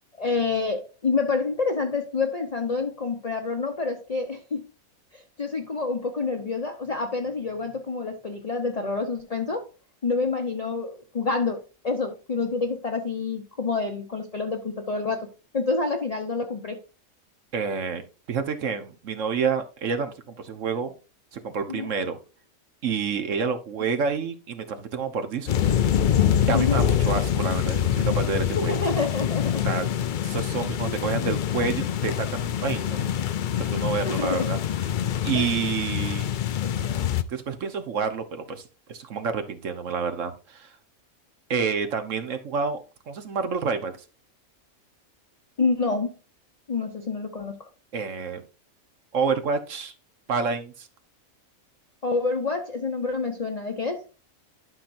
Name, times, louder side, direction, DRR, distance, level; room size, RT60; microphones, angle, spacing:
voice 1, 0.2-4.6 5.1-9.7 10.0-16.8 21.7-21.9 26.5-26.8 28.7-29.7 30.8-30.9 34.0-34.5 35.3-35.5 36.6-37.1 45.6-46.1 46.7-47.6 52.0-54.0, left 4 dB, 35° left, 0.8 m, -28 dB
voice 2, 17.5-18.0 18.3-20.9 21.3-22.2 22.8-25.5 25.9-26.0 26.5-28.8 29.6-29.9 30.2-33.1 33.6-34.6 35.2-36.3 37.3-40.7 41.5-43.9 47.9-48.4 49.1-49.9 50.3-50.9, right 5 dB, 65° right, 1.3 m, -28 dB
Urban Thunder and Light Rain, 25.5-37.2, left 9 dB, 65° left, 0.5 m, -25 dB
12.0 x 5.8 x 2.6 m
omnidirectional pair, 1.4 m